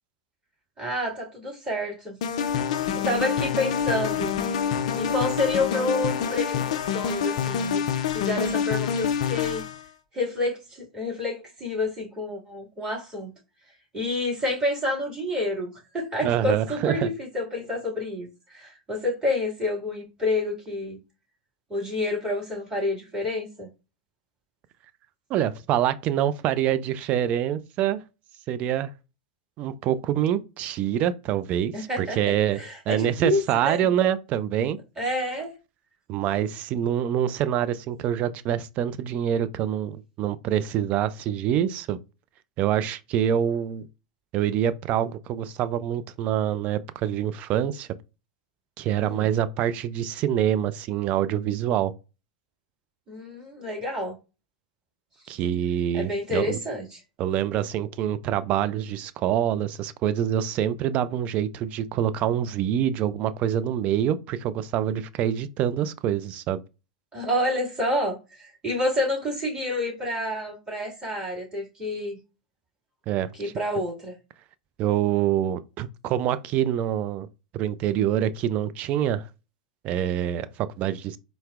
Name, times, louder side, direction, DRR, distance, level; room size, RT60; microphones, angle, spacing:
voice 1, 0.8-2.2 3.0-4.4 5.0-7.8 8.1-9.6 10.1-13.3 13.9-21.0 21.7-23.7 31.7-33.9 35.0-35.5 49.0-49.3 53.1-54.2 55.9-57.0 67.1-72.2 73.3-74.2, left 1 dB, 15° right, 1.9 m, -29 dB
sound 1, 2.2-9.8, left 7 dB, 60° left, 0.4 m, -26 dB
voice 2, 16.2-17.1 25.3-28.0 28.5-28.9 29.6-32.6 32.9-34.8 36.1-42.0 42.6-43.9 44.3-47.9 48.8-51.9 55.3-56.6 57.2-66.6 73.1-73.3 74.8-77.3 77.5-79.3 79.8-81.2, right 10 dB, 35° right, 0.3 m, -25 dB
4.2 x 2.1 x 2.3 m
figure-of-eight pair, 90°, 4 cm